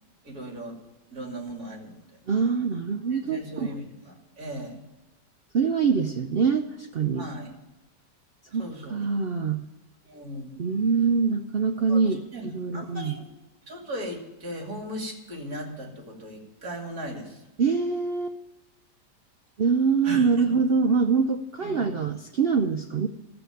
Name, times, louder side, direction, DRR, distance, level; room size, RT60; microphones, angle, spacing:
voice 1, 0.2-0.8 1.1-2.1 3.1-4.8 7.2-7.5 8.6-9.0 10.0-10.7 11.9-12.0 12.3-12.5 12.7-13.3 13.7-17.4 20.0-20.5 21.6-21.9, equal, 60° right, 1 dB, 3.1 m, -37 dB
voice 2, 2.3-3.7 5.5-7.3 8.5-9.6 10.6-12.2 12.5-13.2 17.6-18.4 19.6-23.1, right 5 dB, 80° right, 4 dB, 0.5 m, -24 dB
13.0 x 7.0 x 9.1 m, 1.0 s
omnidirectional pair, 1.8 m